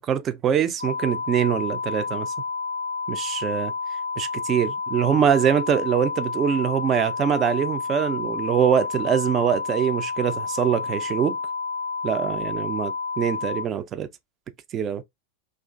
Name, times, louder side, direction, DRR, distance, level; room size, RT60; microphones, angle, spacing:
voice 1, 0.1-2.3 3.1-3.7 4.2-11.4 12.0-14.1 14.7-15.0, right 8 dB, 30° right, 0.3 m, -23 dB
sound 1, 0.8-13.7, left 4 dB, 70° left, 0.4 m, -30 dB
2.4 x 2.3 x 2.3 m
figure-of-eight pair, 90°, 0 cm